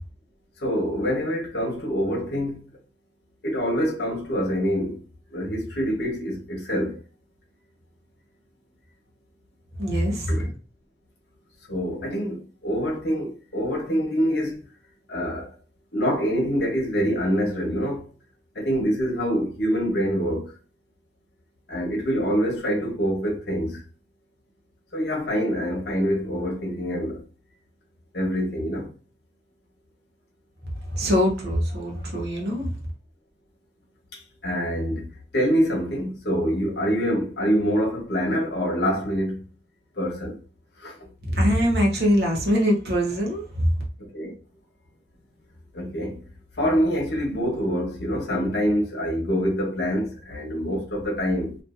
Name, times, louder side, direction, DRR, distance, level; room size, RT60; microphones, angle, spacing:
voice 1, 0.6-2.6 3.4-5.0 5.3-7.0 10.3-10.5 11.7-14.6 15.1-15.5 15.9-18.1 18.5-20.5 21.7-23.8 24.9-27.2 28.1-28.9 34.1-35.1 35.3-39.4 39.9-40.4 40.8-41.1 44.0-44.4 45.7-46.2 46.6-51.6, equal, 75° left, 0.9 m, -25 dB
voice 2, 9.8-10.3 30.8-32.7 41.3-43.7, equal, 70° right, 0.9 m, -23 dB
2.6 x 2.5 x 2.4 m
head